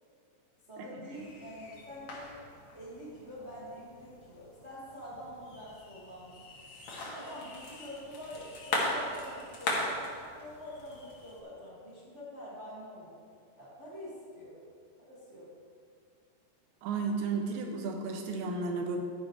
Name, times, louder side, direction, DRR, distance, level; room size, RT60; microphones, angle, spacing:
voice 1, 0.7-2.4 2.7-6.4 7.1-10.1 10.4-13.2 13.6-14.6 15.0-15.5, equal, 60° right, -8 dB, 0.7 m, -46 dB
sound 1, 1.1-11.4, left 2 dB, 55° left, 2.1 m, -39 dB
voice 2, 16.8-19.0, right 4 dB, 85° right, 2 dB, 3.3 m, -33 dB
11.5 x 10.0 x 3.2 m, 2.2 s
omnidirectional pair, 5.0 m